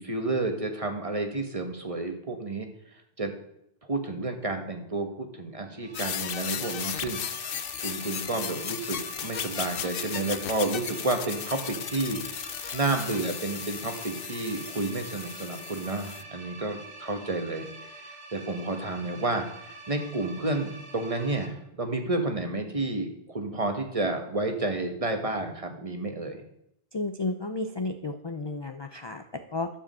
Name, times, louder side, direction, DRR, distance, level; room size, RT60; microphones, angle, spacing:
voice 1, 0.0-2.7 3.2-3.3 3.8-7.2 7.8-17.7 17.9-26.4, right 2 dB, 35° right, 5 dB, 1.4 m, -31 dB
sound 1, 5.7-21.5, right 2 dB, 90° right, 2.0 m, -45 dB
sound 2, 5.9-16.2, left 9 dB, 65° left, 0.8 m, -36 dB
voice 2, 26.9-29.7, left 2 dB, 35° left, 8 dB, 0.4 m, -32 dB
12.5 x 4.9 x 7.5 m, 0.76 s
omnidirectional pair, 1.1 m